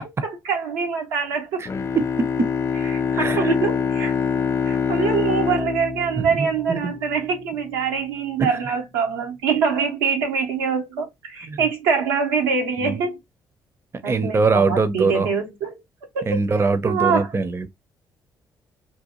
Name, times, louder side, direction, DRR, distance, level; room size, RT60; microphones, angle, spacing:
voice 1, 0.2-1.6 2.9-4.1 4.7-13.2 14.0-15.8 16.1-16.4 16.8-17.3, right 5 dB, 85° right, 0.7 m, -24 dB
Bowed string instrument, 1.6-7.2, left 6 dB, 30° left, 0.4 m, -25 dB
voice 2, 3.1-3.5 6.2-6.9 8.4-8.5 11.4-11.6 12.8-13.0 14.1-15.3 16.3-17.7, right 4 dB, 30° right, 0.5 m, -22 dB
2.6 x 2.1 x 2.9 m
hypercardioid pair, 50°, 9 cm